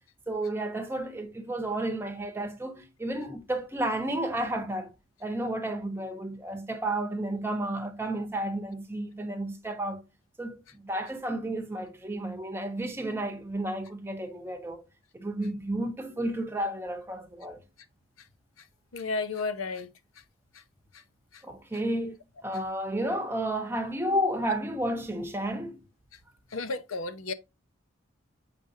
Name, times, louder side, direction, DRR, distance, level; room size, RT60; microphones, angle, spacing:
voice 1, 0.3-4.9 5.2-10.0 10.4-14.9 15.1-17.6 21.4-22.1 22.4-25.8, right 1 dB, 10° right, 0.9 m, -32 dB
voice 2, 18.9-19.9 26.5-27.3, left 3 dB, 80° left, 0.7 m, -32 dB
7.7 x 4.9 x 2.7 m
head